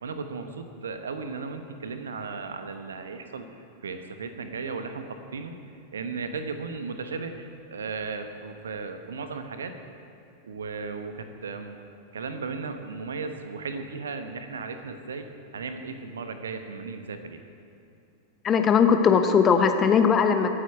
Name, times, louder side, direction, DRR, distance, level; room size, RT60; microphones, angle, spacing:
voice 1, 0.0-3.5 3.8-5.5 5.9-9.7 10.4-11.8 12.1-15.3 15.5-17.4, right 4 dB, 70° right, 8 dB, 1.1 m, -35 dB
voice 2, 18.4-20.5, left 6 dB, 25° left, 7 dB, 1.0 m, -19 dB
23.0 x 8.9 x 4.6 m, 2.6 s
figure-of-eight pair, 90°, 0 cm